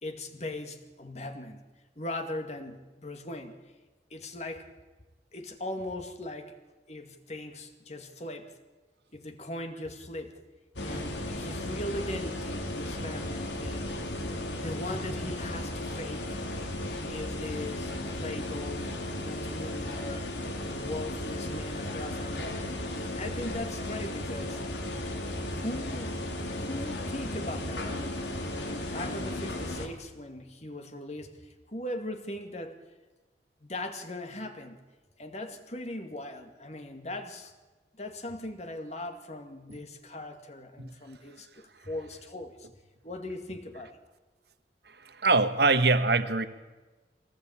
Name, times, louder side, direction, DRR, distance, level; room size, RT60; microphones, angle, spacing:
voice 1, 0.0-1.6 2.0-3.6 4.1-4.7 5.3-6.6 6.9-8.6 9.1-10.4 10.8-13.9 14.6-16.4 17.1-22.5 22.9-24.6 25.5-26.2 26.5-32.8 33.6-34.9 35.2-37.5 37.9-42.7 43.0-44.0, left 1 dB, 40° left, 2.2 m, -39 dB
sound 1, 10.8-29.9, left 1 dB, 85° left, 3.2 m, -35 dB
voice 2, 44.8-46.5, right 3 dB, 65° right, 1.5 m, -24 dB
24.0 x 18.0 x 8.8 m
head